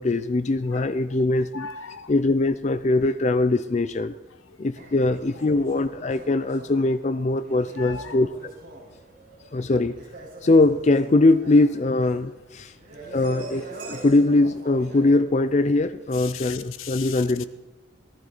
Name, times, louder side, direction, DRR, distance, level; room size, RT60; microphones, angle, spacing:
voice 1, 0.0-1.7 2.1-4.1 4.6-8.3 9.5-9.9 10.4-12.7 13.1-17.4, left 2 dB, 35° left, 0.4 m, -21 dB
voice 2, 1.5-2.1 4.5-4.6 7.8-8.2 16.1-17.5, left 6 dB, 85° left, 0.8 m, -38 dB
sound 1, 4.7-15.2, right 2 dB, 50° right, 5.0 m, -43 dB
17.5 x 14.0 x 4.0 m
head